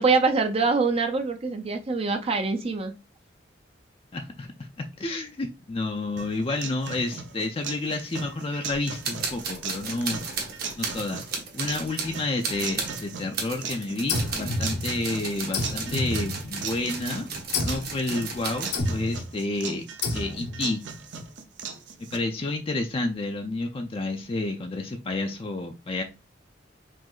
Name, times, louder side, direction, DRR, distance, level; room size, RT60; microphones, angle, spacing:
voice 1, 0.0-2.9, right 4 dB, 35° right, 6 dB, 0.5 m, -24 dB
voice 2, 4.1-4.7 5.0-10.2 10.8-11.2 11.5-17.3 17.5-19.8 20.1-20.8 22.1-26.0, left 2 dB, 30° left, 4 dB, 0.4 m, -30 dB
sound 1, 6.2-22.2, right 5 dB, 75° right, 0.6 m, -39 dB
sound 2, 8.7-8.8 9.0-18.8, right 4 dB, 60° right, 1.2 m, -34 dB
sound 3, 14.1-15.1 15.5-16.8 17.5-18.0 18.7-19.3 20.0-20.6, left 2 dB, 60° left, 0.8 m, -29 dB
5.0 x 2.0 x 3.8 m, 0.28 s
head